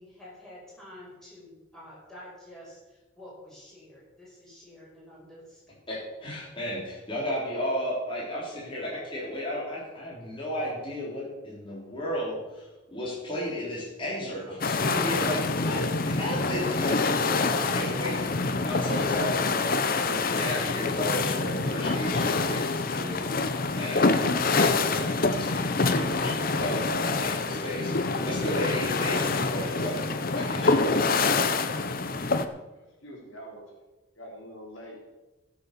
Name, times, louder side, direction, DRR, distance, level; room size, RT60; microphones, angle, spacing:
voice 1, 0.0-5.7, left 1 dB, 5° left, -6 dB, 5.2 m, -49 dB
voice 2, 5.9-30.1 30.3-31.1, left 1 dB, 25° left, -6 dB, 3.7 m, -34 dB
sound 1, 14.6-32.5, left 3 dB, 45° left, 0.8 m, -26 dB
voice 3, 32.7-33.7 34.1-35.0, equal, 75° left, -2 dB, 3.9 m, -45 dB
15.0 x 7.1 x 6.8 m, 1.1 s
head